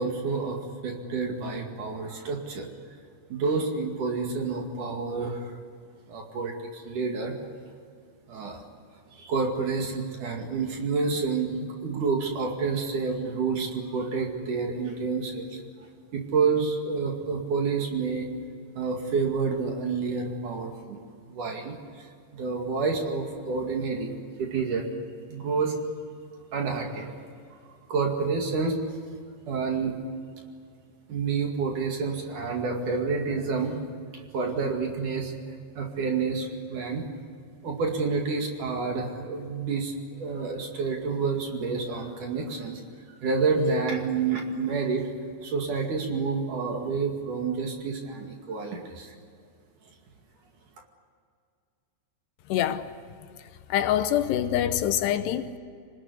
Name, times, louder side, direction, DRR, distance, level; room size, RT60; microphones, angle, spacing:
voice 1, 0.0-2.7 3.3-5.6 6.1-7.3 8.3-8.6 9.1-15.6 16.1-18.3 18.7-21.0 21.3-22.1 22.3-24.1 24.4-24.9 25.3-25.7 26.5-27.2 27.9-28.8 29.5-30.0 31.1-33.8 34.1-35.3 35.7-37.0 37.6-42.8 43.2-45.1 45.4-49.1, right 4 dB, 50° right, 3.4 m, -29 dB
voice 2, 52.5-52.9 53.4-55.5, left 11 dB, 80° left, 2.9 m, -25 dB
25.5 x 20.0 x 9.6 m
omnidirectional pair, 5.0 m